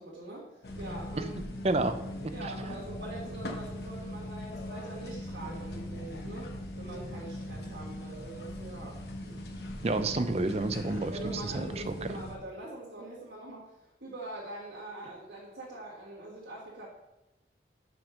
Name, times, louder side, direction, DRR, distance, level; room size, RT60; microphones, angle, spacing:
voice 1, 0.0-1.4 2.3-9.4 11.1-16.9, right 2 dB, 90° right, -8 dB, 1.7 m, -44 dB
sound 1, 0.6-12.4, left 1 dB, 65° left, 1.0 m, -40 dB
voice 2, 9.8-11.9, right 2 dB, 35° right, 9 dB, 0.5 m, -30 dB
5.4 x 4.9 x 6.2 m, 1.0 s
head